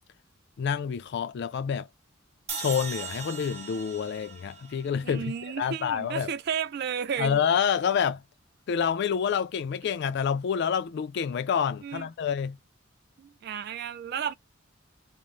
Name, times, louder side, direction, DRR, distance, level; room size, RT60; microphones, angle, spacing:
voice 1, 0.6-1.9 2.6-6.3 7.2-8.2 8.7-12.6, left 7 dB, 55° left, 0.3 m, -28 dB
sound 1, 2.5-5.7, right 5 dB, 35° right, 0.8 m, -39 dB
voice 2, 5.0-7.4 11.8-12.1 13.2-14.3, right 7 dB, 55° right, 0.3 m, -33 dB
2.4 x 2.0 x 3.1 m
head